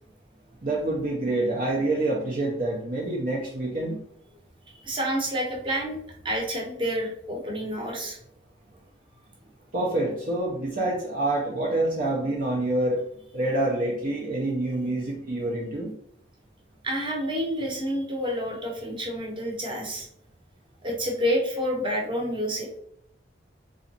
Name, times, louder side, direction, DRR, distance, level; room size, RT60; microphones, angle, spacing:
voice 1, 0.6-4.0 9.7-13.0 13.3-15.9, right 2 dB, 50° right, -3 dB, 0.6 m, -27 dB
voice 2, 4.7-6.0 6.2-8.2 16.8-20.1 20.8-22.8, equal, 25° right, 0 dB, 1.0 m, -29 dB
3.8 x 3.1 x 2.8 m, 0.71 s
head